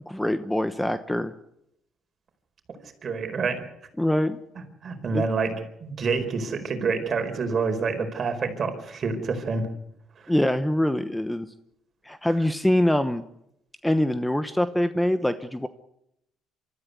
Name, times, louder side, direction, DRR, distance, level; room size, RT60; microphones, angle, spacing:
voice 1, 0.1-1.3 4.0-4.4 5.1-5.2 10.3-11.5 12.0-13.2 13.8-15.7, left 1 dB, 5° left, 12 dB, 1.0 m, -24 dB
voice 2, 3.0-3.6 4.8-5.5 5.8-9.7, right 4 dB, 45° right, 6 dB, 4.6 m, -27 dB
24.5 x 14.0 x 9.5 m, 0.80 s
cardioid pair, 90°, 0 cm